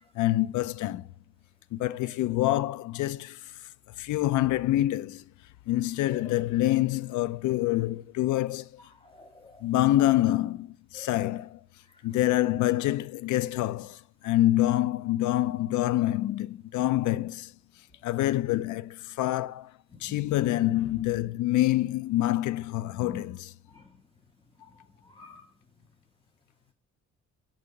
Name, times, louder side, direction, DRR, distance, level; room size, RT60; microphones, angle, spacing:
voice 1, 0.2-1.1 1.7-3.4 4.0-5.2 5.7-8.7 9.6-11.6 12.0-14.0 14.2-17.5 18.0-19.7 20.0-23.5, left 15 dB, 75° left, 0.5 m, -26 dB
voice 2, 9.0-9.6 10.9-11.1 20.1-20.5 23.0-23.2 23.7-23.9 24.6-24.7 25.2-25.4, left 3 dB, 15° left, 0.8 m, -46 dB
5.7 x 3.7 x 5.2 m
cardioid pair, 90°, 30 cm